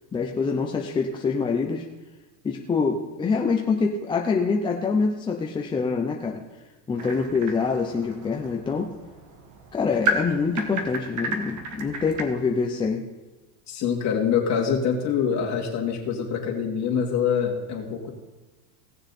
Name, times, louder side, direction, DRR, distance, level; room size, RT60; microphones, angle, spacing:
voice 1, 0.1-1.9 2.4-6.4 6.9-8.9 9.7-13.0, left 4 dB, 10° left, 1 dB, 0.5 m, -25 dB
sound 1, 7.0-12.2, right 2 dB, 35° right, 1.7 m, -32 dB
voice 2, 13.7-18.1, left 7 dB, 35° left, 0 dB, 2.7 m, -25 dB
18.0 x 6.8 x 4.2 m, 1.2 s
supercardioid pair, 140°, 50 cm